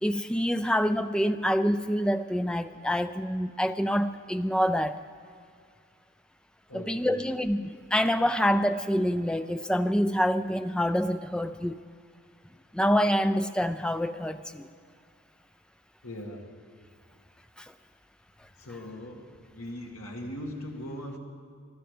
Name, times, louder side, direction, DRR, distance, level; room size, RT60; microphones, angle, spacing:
voice 1, 0.0-5.0 6.7-11.8 12.7-14.7 17.6-17.7, equal, 5° left, 10 dB, 0.3 m, -26 dB
voice 2, 6.7-7.3 16.0-16.5 18.6-19.3 19.5-21.2, left 1 dB, 75° left, 0 dB, 2.2 m, -39 dB
21.0 x 12.5 x 5.1 m, 2.2 s
head